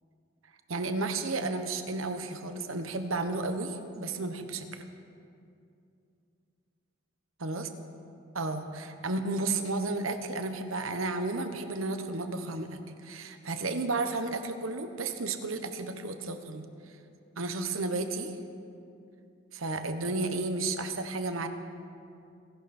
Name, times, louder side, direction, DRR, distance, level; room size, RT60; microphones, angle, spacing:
voice 1, 0.7-4.8 7.4-7.7 8.3-16.7 17.4-18.3 19.5-21.5, right 3 dB, 85° right, 8 dB, 1.2 m, -32 dB
27.0 x 11.5 x 4.4 m, 2.5 s
head